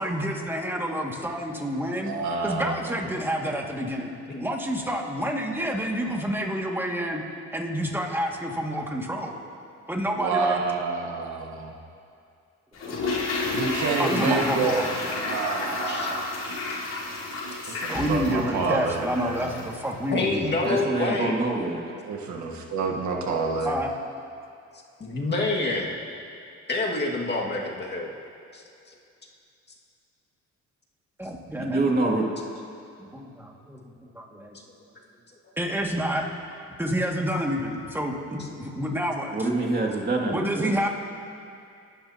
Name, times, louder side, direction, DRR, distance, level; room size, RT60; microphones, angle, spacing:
voice 1, 0.0-2.1 2.4-4.1 4.4-7.2 7.5-9.3 9.9-10.6 14.0-14.9 17.9-20.6 22.3-22.7 23.7-23.9 31.2-31.8 33.0-33.8 34.1-34.6 35.6-36.3 36.8-39.5 40.3-40.9, equal, 5° right, -1 dB, 2.2 m, -28 dB
voice 2, 2.0-3.0 10.1-11.8 13.5-16.3 17.7-19.6 22.0-23.7, right 4 dB, 70° right, 0 dB, 1.4 m, -28 dB
Toilet flush, 12.7-19.8 20.1-20.2, left 3 dB, 60° left, 4.2 m, -31 dB
voice 3, 20.1-21.5 25.0-25.9 26.7-28.2 28.5-28.6 28.9-29.0, left 2 dB, 35° left, -2 dB, 2.1 m, -27 dB
voice 4, 20.6-21.9 31.6-32.3 39.3-40.8, right 2 dB, 30° right, -1 dB, 2.4 m, -26 dB
28.5 x 12.0 x 2.9 m, 2.5 s
cardioid pair, 90°, 30 cm